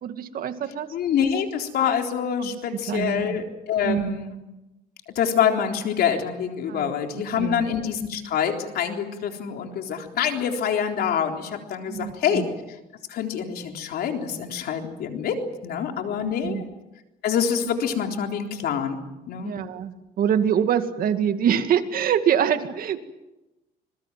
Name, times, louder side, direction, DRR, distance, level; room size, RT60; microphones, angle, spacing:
voice 1, 0.0-0.9 2.4-3.4 3.8-4.2 6.7-6.9 7.4-7.7 11.9-12.5 16.2-16.6 19.4-23.1, right 8 dB, 60° right, 8 dB, 2.2 m, -25 dB
voice 2, 0.9-4.3 5.2-12.5 13.1-15.4 15.6-16.7 17.2-19.0 19.3-19.5, left 8 dB, 65° left, 4 dB, 3.8 m, -26 dB
26.5 x 22.0 x 7.6 m, 0.99 s
cardioid pair, 110°, 17 cm